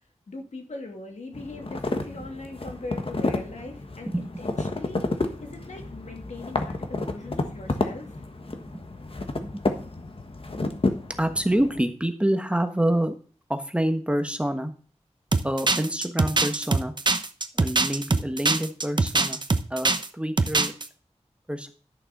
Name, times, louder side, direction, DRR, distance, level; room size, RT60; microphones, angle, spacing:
voice 1, 0.3-5.0 5.4-8.2, left 2 dB, 80° left, 2 dB, 2.7 m, -40 dB
sound 1, 1.3-11.8, left 2 dB, 50° left, 1.5 m, -31 dB
voice 2, 11.2-13.2 13.5-14.7 15.4-16.9 17.5-19.4 19.7-20.7 21.5-21.7, right 1 dB, 10° right, 7 dB, 1.3 m, -27 dB
sound 2, 15.3-20.1 20.4-20.9, right 3 dB, 40° right, 0.8 m, -23 dB
11.5 x 6.6 x 5.4 m, 0.40 s
wide cardioid pair, 85°, 12 cm